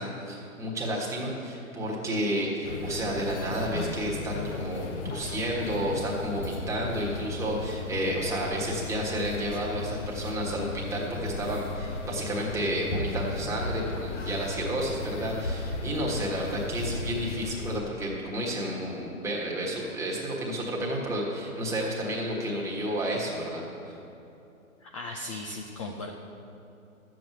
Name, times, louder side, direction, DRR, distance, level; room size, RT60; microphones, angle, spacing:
voice 1, 0.0-23.9, right 1 dB, 5° right, -4 dB, 1.5 m, -31 dB
sound 1, 2.6-17.8, left 3 dB, 55° left, 1.1 m, -35 dB
voice 2, 24.8-26.1, left 2 dB, 25° left, 1 dB, 0.6 m, -37 dB
11.0 x 7.7 x 8.0 m, 2.8 s
hypercardioid pair, 140°, 42 cm